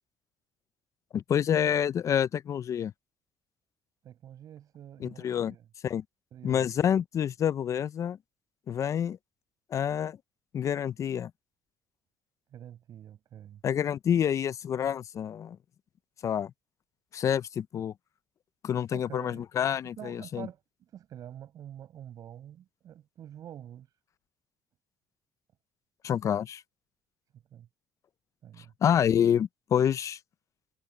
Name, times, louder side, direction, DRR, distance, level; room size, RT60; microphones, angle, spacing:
voice 1, 1.1-2.9 5.0-5.5 5.8-6.0 6.4-8.2 8.7-9.2 9.7-10.2 10.5-11.3 13.6-15.6 16.2-16.5 17.1-17.9 18.6-20.5 26.0-26.6 28.8-30.2, left 9 dB, 50° left, 0.6 m, -27 dB
voice 2, 4.0-5.7 6.3-6.7 12.5-13.6 18.9-19.4 20.0-23.9 27.5-27.7 28.4-28.7, right 10 dB, 60° right, 7.8 m, -46 dB
supercardioid pair, 80°, 7 cm